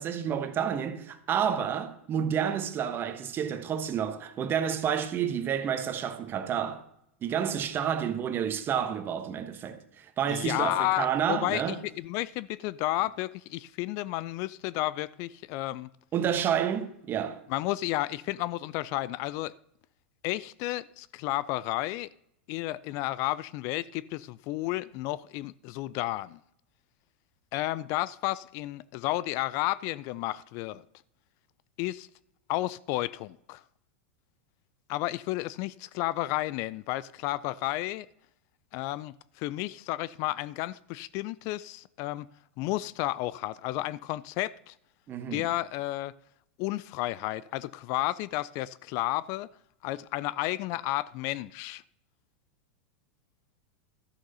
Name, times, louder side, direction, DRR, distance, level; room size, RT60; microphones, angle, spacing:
voice 1, 0.0-6.8 7.2-11.8 16.1-17.4 45.1-45.5, right 8 dB, 30° right, 1.2 m, -30 dB
voice 2, 10.3-15.9 17.5-19.5 20.2-22.1 22.5-26.4 27.5-30.8 31.8-32.1 32.5-33.6 34.9-38.1 38.7-42.3 42.6-44.7 45.3-46.1 46.6-49.5 49.8-51.8, left 17 dB, 50° left, 0.4 m, -32 dB
13.0 x 6.4 x 5.5 m
hypercardioid pair, 105°, 7 cm